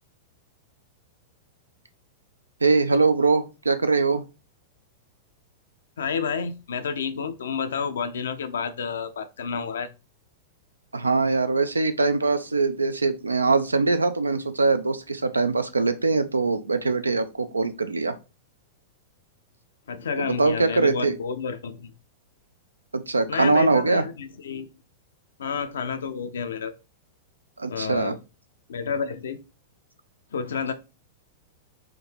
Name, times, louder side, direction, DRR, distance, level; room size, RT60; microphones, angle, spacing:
voice 1, 2.6-4.2 10.9-18.2 20.2-21.1 22.9-24.0 27.6-28.1, right 3 dB, 80° right, 11 dB, 0.4 m, -22 dB
voice 2, 6.0-9.9 19.9-21.9 23.3-24.7 25.4-26.7 27.7-28.2 28.7-29.4 30.3-30.7, left 6 dB, 65° left, 10 dB, 0.5 m, -30 dB
3.7 x 2.8 x 4.4 m, 0.30 s
figure-of-eight pair, 95°, 0 cm